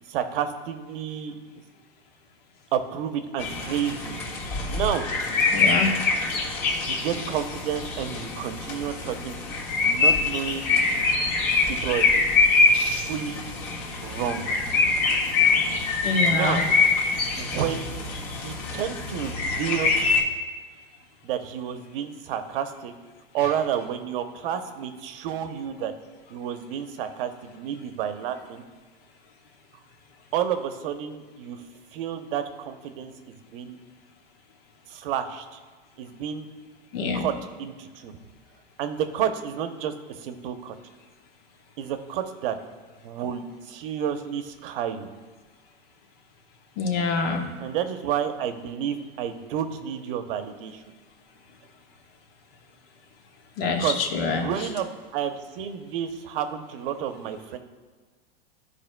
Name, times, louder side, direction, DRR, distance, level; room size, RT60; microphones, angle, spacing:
voice 1, 0.1-1.4 2.7-4.2 4.7-5.1 6.8-9.4 9.8-10.7 11.7-12.1 13.0-13.5 14.0-14.5 16.3-16.7 17.4-17.9 18.3-19.9 21.2-22.9 23.3-25.9 26.3-28.6 30.3-31.6 31.9-33.8 34.9-35.6 36.0-36.5 37.1-37.3 37.6-38.2 38.8-40.8 41.8-42.6 43.0-45.1 47.6-50.8 53.8-54.0 54.3-54.9 55.1-57.6, right 9 dB, 65° right, 8 dB, 0.8 m, -30 dB
sound 1, 3.4-20.2, left 4 dB, 50° left, 1.7 m, -24 dB
voice 2, 5.5-5.9 16.0-16.6 36.9-37.3 46.8-47.5 53.6-54.5, left 4 dB, 70° left, 3 dB, 1.3 m, -25 dB
13.5 x 4.9 x 2.2 m, 1.4 s
supercardioid pair, 135°, 30 cm